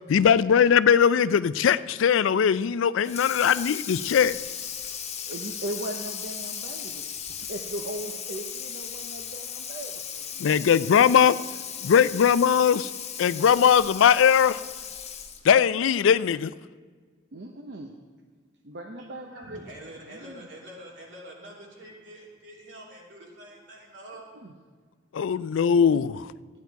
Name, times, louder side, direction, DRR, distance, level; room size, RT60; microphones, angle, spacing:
voice 1, 0.1-4.3 10.4-11.4 11.8-12.9 13.2-14.6 15.4-16.5 25.1-26.3, left 7 dB, 85° left, 17 dB, 0.4 m, -20 dB
Water tap faucet / Sink (filling or washing), 3.0-15.5, left 8 dB, 35° left, 1.0 m, -37 dB
voice 2, 5.3-7.1 7.4-10.7 11.8-11.9 17.3-17.9 18.6-20.5 24.3-24.6 25.8-26.0, right 1 dB, 60° right, 2 dB, 0.7 m, -39 dB
voice 3, 19.3-24.3, right 1 dB, 75° right, -3 dB, 2.8 m, -45 dB
14.0 x 9.4 x 4.6 m, 1.5 s
head